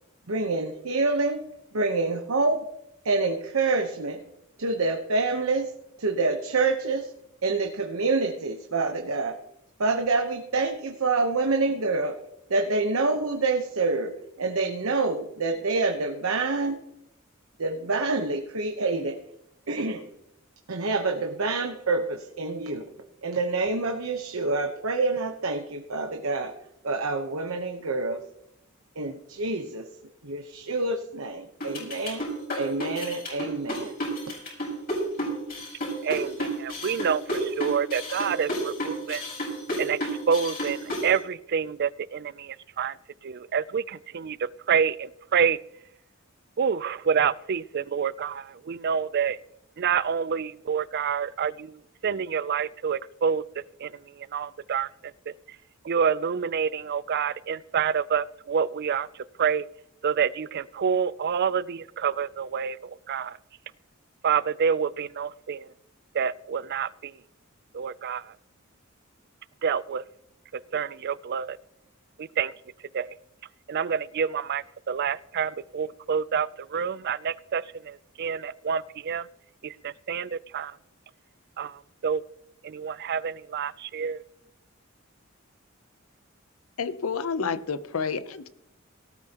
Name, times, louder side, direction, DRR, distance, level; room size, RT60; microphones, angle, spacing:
voice 1, 0.3-1.4 1.7-2.7 3.0-4.2 4.6-5.7 6.0-7.1 7.4-9.4 9.8-12.2 12.5-16.8 17.6-19.2 19.7-20.0 20.7-22.9 23.2-26.5 26.8-28.2 29.0-29.9 30.2-32.2 32.5-33.9, right 3 dB, 85° right, 4 dB, 1.0 m, -27 dB
sound 1, 31.6-41.1, equal, 45° left, 5.7 m, -31 dB
voice 2, 36.0-39.2 39.8-40.0 40.3-40.8 41.0-42.9 43.2-44.4 44.7-45.6 46.6-49.4 49.8-51.7 52.0-53.4 53.8-53.9 54.3-54.9 55.9-59.1 59.4-59.6 60.0-62.8 63.1-63.3 64.2-65.7 66.1-67.1 67.7-68.2 69.6-70.0 70.7-71.6 72.4-72.5 72.9-73.1 73.7-79.3 79.6-80.7 81.6-82.2 82.6-84.2, right 7 dB, 50° right, 19 dB, 0.4 m, -27 dB
voice 3, 86.8-88.5, left 5 dB, 85° left, 14 dB, 0.7 m, -29 dB
18.0 x 12.0 x 2.9 m, 0.83 s
head